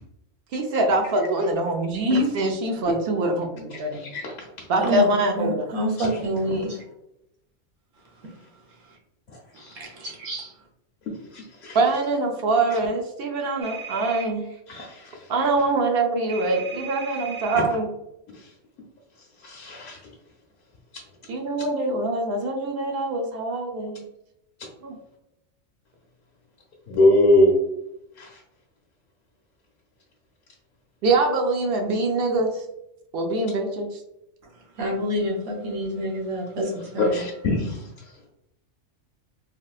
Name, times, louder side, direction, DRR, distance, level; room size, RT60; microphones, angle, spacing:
voice 1, 0.5-4.0 4.7-5.5 11.7-14.5 15.3-17.9 21.3-24.0 24.8-24.9 31.0-32.6 33.1-34.0, right 2 dB, 65° right, 3 dB, 0.6 m, -24 dB
voice 2, 3.7-4.7 6.0-6.1 6.5-6.6 9.6-9.8 11.3-11.8 14.7-15.3 17.5-17.7 18.3-18.5 19.4-20.0 26.9-27.6 28.2-28.4 37.0-38.3, left 1 dB, 60° left, -2 dB, 0.8 m, -23 dB
voice 3, 4.8-5.1 5.4-6.8 9.7-10.5 34.7-37.2, right 1 dB, 80° right, -1 dB, 1.2 m, -27 dB
sound 1, 13.6-14.3 16.3-17.6, right 6 dB, 35° right, 0.9 m, -37 dB
3.4 x 2.4 x 2.3 m, 0.85 s
omnidirectional pair, 1.3 m